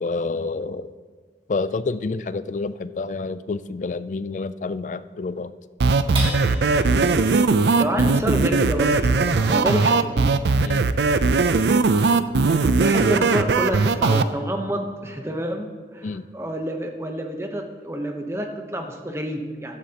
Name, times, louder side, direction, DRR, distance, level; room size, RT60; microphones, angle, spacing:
voice 1, 0.0-0.9 1.5-5.5 10.6-10.9 16.0-16.2, left 3 dB, 45° left, 14 dB, 0.3 m, -28 dB
sound 1, 5.8-14.2, right 4 dB, 80° right, 0.5 m, -19 dB
sound 2, 6.1-12.8 13.3-13.4 13.8-14.3, right 1 dB, 30° right, 1.9 m, -40 dB
voice 2, 7.8-10.3 12.8-19.8, equal, 15° right, 4 dB, 0.9 m, -28 dB
14.5 x 11.0 x 2.9 m, 1.5 s
head